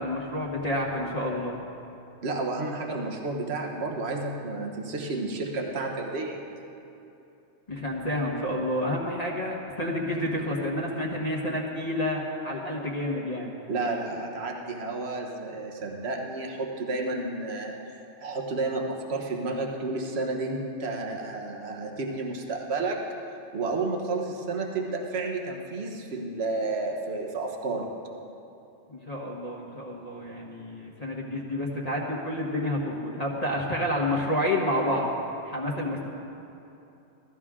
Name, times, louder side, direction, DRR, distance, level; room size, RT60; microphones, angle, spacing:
voice 1, 0.0-1.5 7.7-13.5 28.9-35.1 35.4-36.1, left 1 dB, 35° left, -4 dB, 1.5 m, -29 dB
voice 2, 2.2-6.4 13.7-17.8 18.2-23.0 23.5-27.9 35.9-36.1, right 3 dB, 60° right, 1 dB, 1.5 m, -31 dB
16.5 x 13.5 x 3.7 m, 2.8 s
omnidirectional pair, 1.3 m